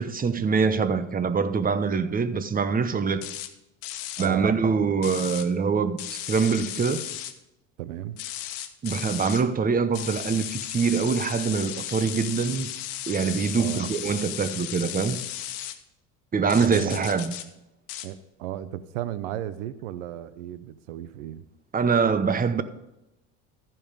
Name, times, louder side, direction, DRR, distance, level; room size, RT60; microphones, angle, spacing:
voice 1, 0.0-3.3 4.2-7.0 8.8-12.7 13.1-15.2 16.3-17.4 21.7-22.6, right 5 dB, 25° right, 1.0 m, -24 dB
sound 1, 3.2-3.5 3.8-4.3 5.0-5.5 6.0-7.3 8.2-9.4 9.9-15.8 16.5-17.5 17.9-18.1, left 12 dB, 70° left, 1.2 m, -35 dB
voice 2, 4.2-4.5 7.8-8.2 13.5-13.9 16.6-17.1 18.0-21.4, right 12 dB, 85° right, 0.7 m, -35 dB
14.0 x 5.6 x 5.1 m
hypercardioid pair, 80°, 36 cm